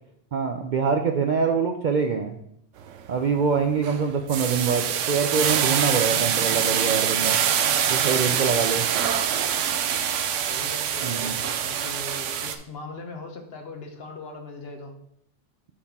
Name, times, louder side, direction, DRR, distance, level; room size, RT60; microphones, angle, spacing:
voice 1, 0.3-2.3 3.1-7.4 7.9-8.9 11.0-11.4, right 5 dB, 55° right, 4 dB, 0.5 m, -24 dB
sound 1, 2.8-3.1 3.5-12.6, right 8 dB, 80° right, 0.9 m, -25 dB
voice 2, 10.5-14.9, left 3 dB, 55° left, 3 dB, 1.1 m, -40 dB
6.5 x 5.6 x 3.6 m, 0.72 s
omnidirectional pair, 1.3 m